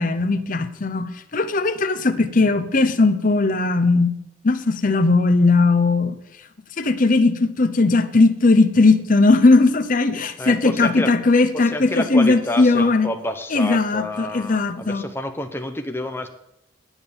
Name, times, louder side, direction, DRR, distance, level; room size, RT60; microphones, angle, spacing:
voice 1, 0.0-4.2 4.4-6.2 6.8-13.1 13.5-15.0, left 3 dB, 45° left, 0.7 m, -18 dB
voice 2, 10.4-11.1 11.5-16.3, left 1 dB, 10° left, 0.8 m, -29 dB
9.8 x 8.9 x 7.0 m
head